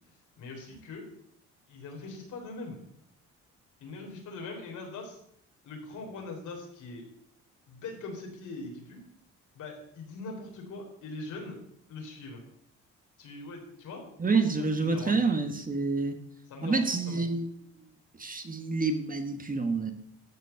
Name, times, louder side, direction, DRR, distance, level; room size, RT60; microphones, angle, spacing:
voice 1, 0.4-1.1 1.7-2.8 3.8-5.2 5.6-7.1 7.7-9.0 9.5-11.6 11.9-12.4 13.2-15.2 16.5-17.2, left 3 dB, 80° left, 1 dB, 3.9 m, -42 dB
voice 2, 14.2-16.1 16.6-17.5 18.2-19.9, right 4 dB, 30° right, 7 dB, 1.5 m, -28 dB
13.5 x 5.2 x 7.0 m, 0.69 s
cardioid pair, 90°, 30 cm